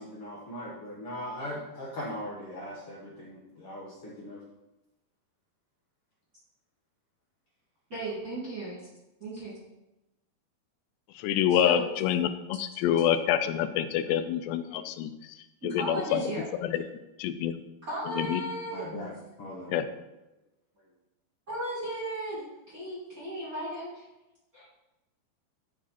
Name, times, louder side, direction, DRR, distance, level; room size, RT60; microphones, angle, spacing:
voice 1, 0.0-4.4 18.7-19.1 19.4-19.7, left 1 dB, 55° left, -7 dB, 1.7 m, -39 dB
voice 2, 7.9-8.8 9.2-9.6 11.5-11.8 14.7-14.8 15.6-16.4 17.9-18.8 21.5-24.0 24.5-24.6, right 1 dB, 30° right, -8 dB, 2.0 m, -36 dB
voice 3, 11.2-15.1 15.6-16.2 16.6-16.8 17.2-17.6 18.2-18.4 19.7-19.8, left 10 dB, 90° left, 10 dB, 2.8 m, -27 dB
12.0 x 4.7 x 4.2 m, 0.97 s
omnidirectional pair, 4.8 m